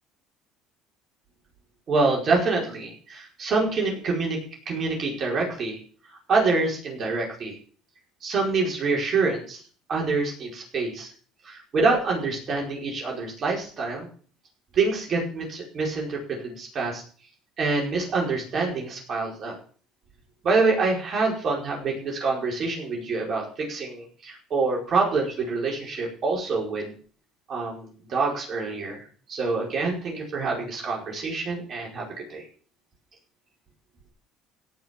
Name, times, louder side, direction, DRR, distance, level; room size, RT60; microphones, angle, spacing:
voice 1, 1.9-4.4 4.6-5.8 6.3-7.5 8.2-9.6 9.9-11.1 11.4-14.1 14.7-17.0 17.6-19.5 20.4-26.9 27.5-29.0 29.3-32.4, right 3 dB, 45° right, -2 dB, 5.1 m, -26 dB
17.0 x 6.2 x 7.4 m, 0.44 s
cardioid pair, 110°, 0 cm